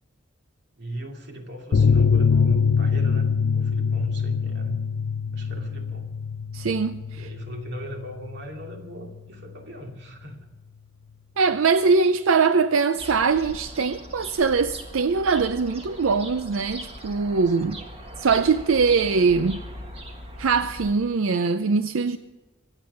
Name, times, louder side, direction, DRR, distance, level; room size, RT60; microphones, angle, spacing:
voice 1, 0.8-3.3 3.5-4.8 5.3-6.1 7.1-10.5 17.5-17.8, right 1 dB, 55° right, 2.5 m, -38 dB
sound 1, 1.7-8.8 9.1-9.2 9.5-9.6, left 5 dB, 85° left, 0.6 m, -24 dB
voice 2, 6.5-7.3 11.4-17.8 18.2-19.6 20.4-22.2, right 4 dB, 90° right, 0.5 m, -22 dB
sound 2, 13.0-20.9, equal, 30° right, 1.8 m, -40 dB
24.0 x 9.0 x 5.7 m
head